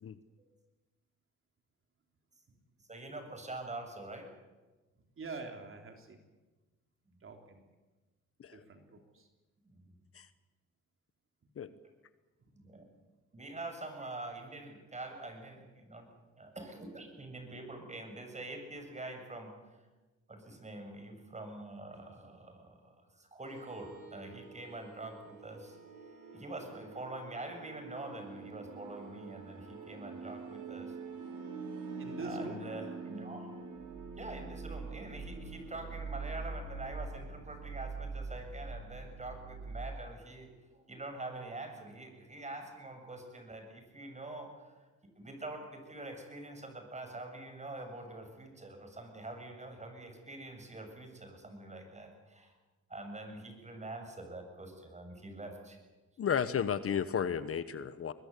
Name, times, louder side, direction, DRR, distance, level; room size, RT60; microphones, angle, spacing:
voice 1, 2.9-4.3 7.1-7.2 9.6-10.0 12.6-12.9 13.3-16.1 16.4-19.6 20.3-25.8 26.3-30.9 32.2-33.7 34.2-44.9 45.2-52.5 52.9-55.8, right 2 dB, 25° right, 5 dB, 7.1 m, -45 dB
voice 2, 5.2-6.2 7.2-7.6 8.5-9.3 32.0-32.6, right 3 dB, 45° right, 4 dB, 3.5 m, -45 dB
sound 1, 23.4-40.0, right 4 dB, 85° right, 5.5 m, -44 dB
voice 3, 56.2-58.1, left 7 dB, 50° left, 13 dB, 1.2 m, -33 dB
23.5 x 20.5 x 8.5 m, 1.2 s
cardioid pair, 90°, 30 cm